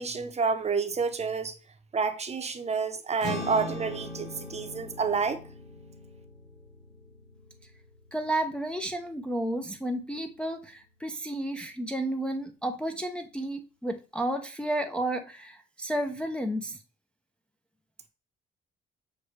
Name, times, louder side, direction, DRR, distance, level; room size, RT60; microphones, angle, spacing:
voice 1, 0.0-1.5 1.9-5.4, right 5 dB, 35° right, 0.7 m, -29 dB
sound 1, 3.2-9.8, left 2 dB, 60° left, 1.5 m, -41 dB
voice 2, 8.1-16.8, right 1 dB, 5° left, 0.4 m, -32 dB
6.3 x 2.2 x 3.1 m
cardioid pair, 90°, 20 cm